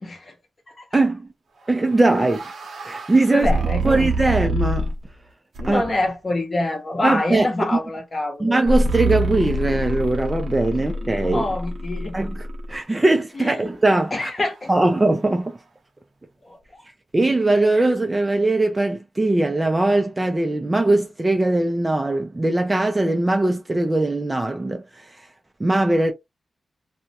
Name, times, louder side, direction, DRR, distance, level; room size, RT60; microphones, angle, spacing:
voice 1, 0.0-0.3 3.3-4.1 5.6-8.6 10.7-12.2 13.4-13.6 14.1-14.7 16.5-16.6, left 2 dB, 30° left, 0.8 m, -26 dB
voice 2, 0.9-1.3 1.7-2.4 2.8-3.5 3.8-4.9 5.7-5.8 7.0-7.8 8.4-11.5 12.1-14.3 14.7-15.6 17.1-24.8 25.6-26.1, right 2 dB, 15° right, 0.3 m, -20 dB
sound 1, 1.8-5.1 5.5-6.1 8.7-12.8, right 1 dB, 85° right, 0.6 m, -26 dB
2.3 x 2.0 x 2.8 m
wide cardioid pair, 180°, 0 cm